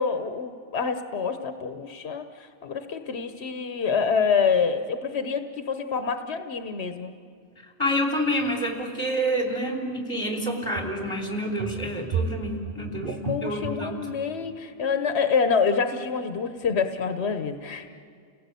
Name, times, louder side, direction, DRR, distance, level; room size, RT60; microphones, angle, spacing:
voice 1, 0.0-2.2 2.6-7.1 13.3-17.9, left 5 dB, 85° left, 8 dB, 1.2 m, -26 dB
voice 2, 7.8-14.0, equal, 25° left, 2 dB, 3.5 m, -28 dB
sound 1, 8.4-8.5 10.8-11.0 11.4-13.8, right 4 dB, 55° right, 1.4 m, -33 dB
30.0 x 17.0 x 8.3 m, 2.2 s
omnidirectional pair, 1.1 m